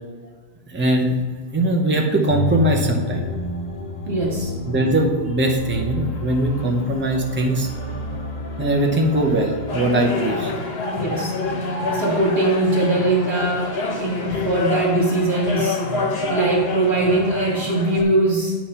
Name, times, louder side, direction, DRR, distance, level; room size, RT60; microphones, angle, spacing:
voice 1, 0.7-1.3 1.5-3.3 4.6-7.7 8.6-10.7, right 1 dB, 10° right, 0 dB, 0.7 m, -20 dB
sound 1, 2.3-16.4, left 3 dB, 50° left, 0.8 m, -32 dB
voice 2, 4.1-4.5 10.9-11.4 11.9-15.8 16.3-18.6, right 2 dB, 70° right, -6 dB, 1.8 m, -21 dB
sound 2, 9.7-18.0, left 3 dB, 70° left, 1.2 m, -27 dB
8.8 x 3.1 x 5.5 m, 1.5 s
omnidirectional pair, 1.1 m